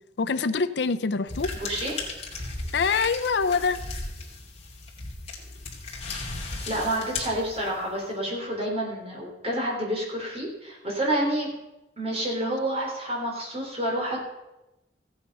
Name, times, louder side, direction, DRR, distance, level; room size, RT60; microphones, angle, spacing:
voice 1, 0.2-1.5 2.7-3.8, left 5 dB, 70° left, 12 dB, 0.5 m, -25 dB
sound 1, 1.3-7.9, left 3 dB, 35° left, 2.6 m, -36 dB
voice 2, 1.5-2.0 6.7-11.5 12.0-14.2, right 1 dB, 35° right, -1 dB, 3.8 m, -29 dB
15.0 x 8.9 x 5.4 m, 0.95 s
head